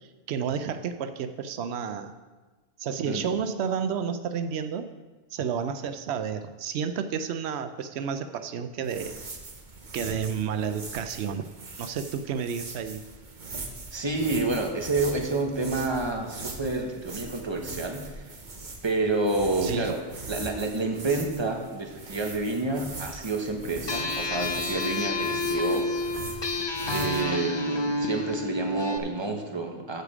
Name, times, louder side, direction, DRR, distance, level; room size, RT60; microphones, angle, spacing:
voice 1, 0.0-2.1 2.8-4.9 5.3-9.1 9.9-11.4 11.8-13.0 19.6-19.9, right 7 dB, 90° right, 9 dB, 0.9 m, -31 dB
sound 1, 8.8-27.2, right 3 dB, 50° right, 1.2 m, -41 dB
voice 2, 13.9-18.3 18.8-20.0 20.3-26.2 26.9-30.0, right 2 dB, 25° right, 3 dB, 1.1 m, -29 dB
sound 2, 23.9-29.0, left 2 dB, 30° left, 0.6 m, -29 dB
14.5 x 4.9 x 4.9 m, 1.2 s
omnidirectional pair, 1.1 m